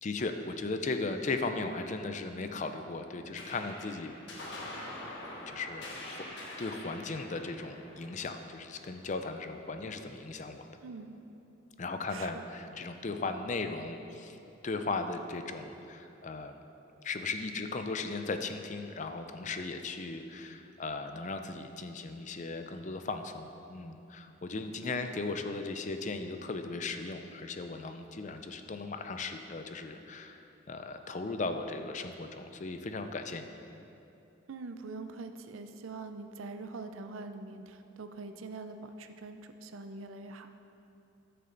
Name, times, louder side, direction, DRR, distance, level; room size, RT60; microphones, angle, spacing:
voice 1, 0.0-4.1 5.5-6.2 6.6-10.6 11.8-14.4 14.6-16.6 17.0-30.4 30.7-33.5, left 3 dB, 35° left, 7 dB, 0.5 m, -37 dB
sound 1, 3.4-10.1, left 1 dB, 60° left, 1.5 m, -46 dB
voice 2, 10.8-11.2 12.1-12.5 24.8-25.1 34.5-40.5, right 3 dB, 90° right, 8 dB, 0.6 m, -44 dB
13.0 x 6.7 x 3.9 m, 2.8 s
head